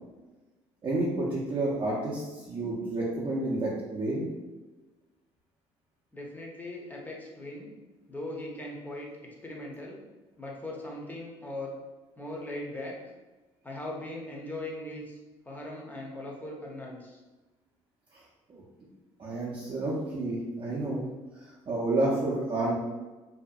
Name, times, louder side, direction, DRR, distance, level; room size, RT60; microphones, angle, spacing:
voice 1, 0.8-4.3 18.1-18.2 18.5-18.6 19.2-21.1 21.3-22.8, right 2 dB, 40° right, -6 dB, 0.6 m, -30 dB
voice 2, 6.1-7.7 8.1-9.1 9.4-10.0 10.4-11.8 12.2-13.0 13.6-15.2 15.5-17.2, left 1 dB, 15° left, -2 dB, 0.7 m, -39 dB
2.7 x 2.5 x 2.3 m, 1.2 s
supercardioid pair, 85°, 12 cm